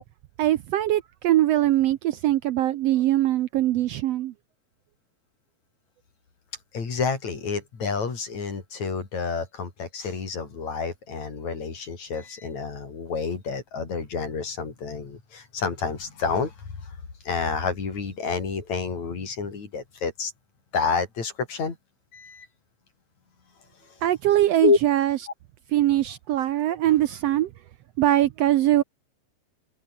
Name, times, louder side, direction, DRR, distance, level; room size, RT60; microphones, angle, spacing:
voice 1, 0.4-4.3 24.0-25.2 25.7-27.5 28.0-28.8, right 13 dB, 70° right, 1.6 m, -22 dB
voice 2, 6.7-16.5 16.8-16.9 17.3-20.3 20.7-21.8 22.1-22.5 24.6-24.8, left 5 dB, 65° left, 5.8 m, -29 dB
omnidirectional pair, 3.4 m